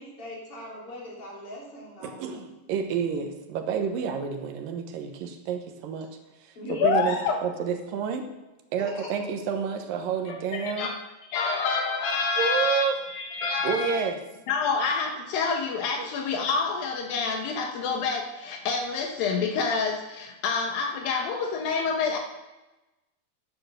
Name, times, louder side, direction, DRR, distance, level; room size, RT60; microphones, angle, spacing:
voice 1, 0.0-2.6 6.6-7.1 8.8-9.1, equal, 40° left, -4 dB, 4.2 m, -41 dB
voice 2, 2.0-6.1 6.4-7.2 7.4-8.3 8.7-10.9 12.4-12.9 13.6-14.2 16.0-16.1, right 6 dB, 75° right, 6 dB, 2.6 m, -29 dB
voice 3, 6.8-7.4 10.5-10.9 11.3-14.1 14.5-22.2, left 4 dB, 75° left, 2 dB, 2.8 m, -27 dB
10.0 x 10.0 x 6.5 m, 1.1 s
omnidirectional pair, 4.2 m